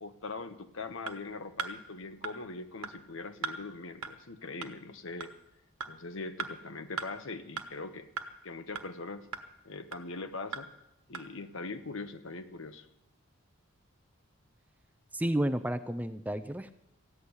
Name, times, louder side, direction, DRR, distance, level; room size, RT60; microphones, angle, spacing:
voice 1, 0.0-5.3 5.9-8.1 8.4-9.3 9.6-10.7 11.1-12.9, left 3 dB, 65° left, 9 dB, 1.1 m, -41 dB
sound 1, 1.1-1.2 1.6-1.7 2.2-2.3 2.8-2.9 3.4-3.6 4.0-4.1 4.6-4.7 5.2-5.3 5.8-5.9 6.4-6.5 7.0-7.1 7.6-7.7 8.2-8.3 8.8-8.9 9.3-9.4 9.9-10.0 10.5-10.6 11.1-11.2, right 5 dB, 90° right, 1.2 m, -36 dB
voice 2, 15.1-16.7, right 1 dB, 5° right, 9 dB, 0.5 m, -31 dB
15.0 x 8.6 x 9.7 m, 0.86 s
head